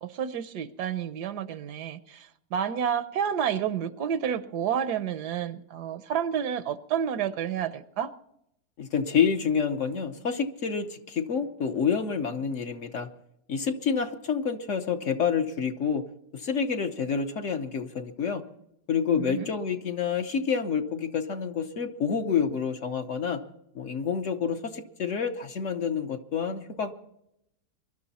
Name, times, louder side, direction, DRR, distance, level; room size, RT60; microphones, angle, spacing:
voice 1, 0.0-8.1 19.2-19.5, right 8 dB, 75° right, 13 dB, 1.3 m, -30 dB
voice 2, 8.8-13.1 13.5-16.0 16.3-18.4 18.9-23.4 23.7-26.9, left 6 dB, 55° left, 6 dB, 1.2 m, -28 dB
23.0 x 12.0 x 4.2 m, 0.79 s
omnidirectional pair, 1.7 m